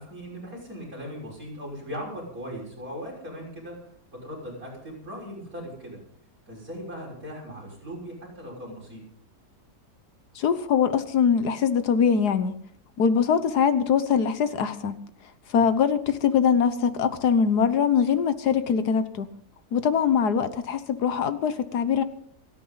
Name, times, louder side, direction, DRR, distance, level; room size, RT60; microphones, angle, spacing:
voice 1, 0.0-3.8 4.2-6.0 6.5-9.0 15.5-15.7, equal, 60° right, -3 dB, 6.5 m, -38 dB
voice 2, 10.3-12.6 13.0-15.0 15.5-19.3 19.7-22.0, left 7 dB, 75° left, 11 dB, 1.6 m, -22 dB
28.5 x 9.8 x 4.0 m, 0.65 s
omnidirectional pair, 1.7 m